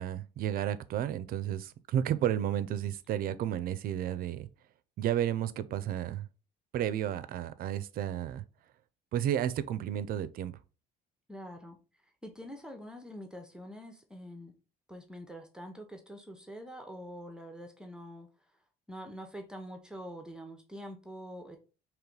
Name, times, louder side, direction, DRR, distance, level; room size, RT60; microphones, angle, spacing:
voice 1, 0.0-4.5 5.0-6.3 6.7-8.4 9.1-10.5, right 10 dB, 60° right, 0.4 m, -32 dB
voice 2, 11.3-11.8 12.2-14.5 14.9-18.3 18.9-21.6, equal, 5° right, 0.7 m, -45 dB
3.1 x 3.0 x 3.8 m
cardioid pair, 110°, 17 cm